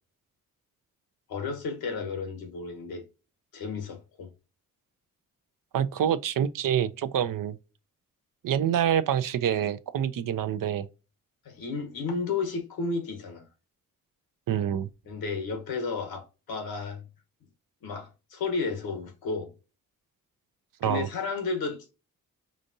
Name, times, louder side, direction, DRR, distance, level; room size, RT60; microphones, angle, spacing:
voice 1, 1.3-3.0 3.5-4.3 11.4-13.5 15.0-17.0 17.8-19.5 20.8-21.9, left 4 dB, 85° left, 1.3 m, -32 dB
voice 2, 5.7-7.6 8.4-10.9 14.5-14.9 20.8-21.1, right 9 dB, 65° right, 0.6 m, -26 dB
5.0 x 2.6 x 2.7 m
supercardioid pair, 50°, 35 cm